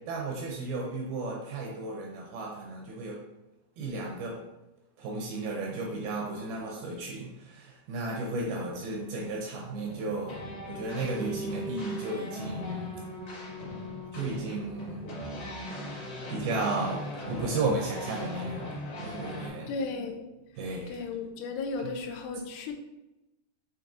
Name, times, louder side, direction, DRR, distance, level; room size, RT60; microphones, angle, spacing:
voice 1, 0.1-3.2 3.8-4.4 5.0-13.1 14.1-15.0 16.3-19.7 20.6-21.0, right 2 dB, 80° right, 0 dB, 2.2 m, -34 dB
sound 1, 9.7-19.5, equal, 55° left, 1.7 m, -39 dB
voice 2, 19.7-20.3 20.9-22.7, left 4 dB, 85° left, 5 dB, 2.5 m, -35 dB
7.0 x 3.0 x 2.5 m, 0.98 s
omnidirectional pair, 4.7 m